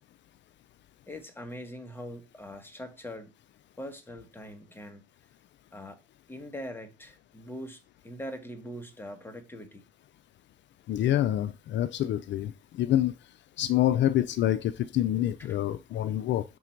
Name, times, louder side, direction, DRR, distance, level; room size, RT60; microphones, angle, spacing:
voice 1, 1.1-3.3 3.8-5.0 5.7-6.0 6.3-9.8 15.4-15.6, equal, 10° left, 1.4 m, -42 dB
voice 2, 10.9-12.5 12.8-13.1 13.6-16.4, left 12 dB, 65° left, 0.4 m, -26 dB
5.9 x 3.7 x 4.5 m
cardioid pair, 90°, 20 cm